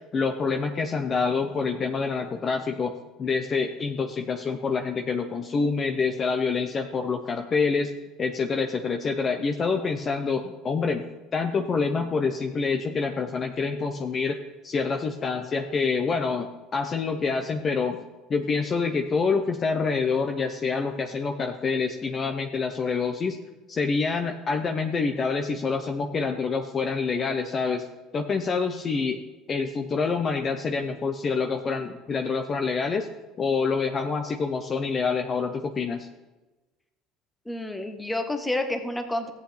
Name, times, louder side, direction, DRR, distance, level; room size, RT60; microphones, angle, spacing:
voice 1, 0.1-2.9 3.2-7.9 8.2-11.0 11.3-14.4 14.6-18.0 18.3-23.4 23.7-27.8 28.1-29.2 29.5-33.1 33.4-36.1, left 4 dB, 35° left, 5 dB, 0.8 m, -26 dB
voice 2, 37.4-39.3, left 1 dB, 10° left, 6 dB, 1.3 m, -29 dB
14.0 x 8.2 x 3.4 m, 1.2 s
supercardioid pair, 100°, 0 cm